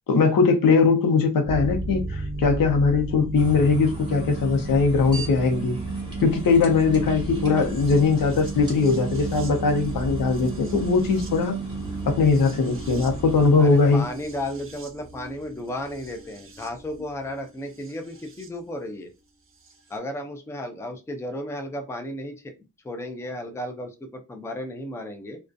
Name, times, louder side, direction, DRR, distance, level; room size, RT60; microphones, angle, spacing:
voice 1, 0.1-5.8 6.2-11.6 12.1-14.0, left 4 dB, 80° left, 0.7 m, -20 dB
sound 1, 1.4-18.5 19.7-19.8, right 3 dB, 40° right, 0.6 m, -33 dB
sound 2, 3.3-14.0, right 1 dB, 15° right, 1.2 m, -41 dB
voice 2, 13.6-19.1 19.9-22.5 22.8-25.4, left 1 dB, 10° left, 0.4 m, -34 dB
2.4 x 2.2 x 2.5 m
wide cardioid pair, 115°, 34 cm